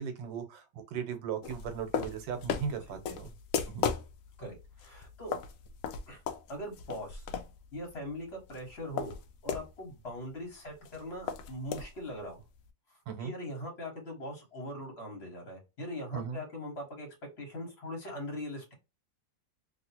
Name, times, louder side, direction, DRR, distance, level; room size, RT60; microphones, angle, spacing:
voice 1, 0.0-3.3 3.7-3.8 13.1-13.3 16.1-16.4, right 7 dB, 80° right, 1.5 m, -37 dB
sound 1, 1.4-9.7 10.0-10.1 10.3-12.7, left 7 dB, 90° left, 0.7 m, -37 dB
voice 2, 2.7-3.0 4.4-5.3 6.1-6.2 6.5-7.3 7.7-9.2 9.4-12.4 12.9-17.1 17.4-18.7, left 1 dB, 35° left, 1.4 m, -41 dB
3.0 x 2.8 x 2.8 m
omnidirectional pair, 2.0 m